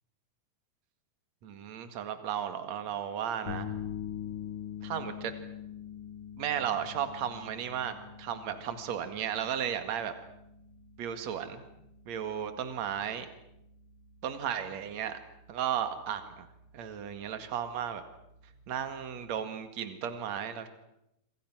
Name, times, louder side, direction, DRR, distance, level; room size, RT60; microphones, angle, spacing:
voice 1, 1.4-3.7 4.8-5.3 6.4-10.1 11.0-11.6 12.1-13.3 14.2-15.2 15.5-16.5 16.7-18.0 18.7-20.7, right 9 dB, 55° right, 9 dB, 2.8 m, -34 dB
sound 1, 3.5-19.4, left 8 dB, 65° left, 3.8 m, -45 dB
27.0 x 26.0 x 6.2 m, 0.84 s
omnidirectional pair, 4.4 m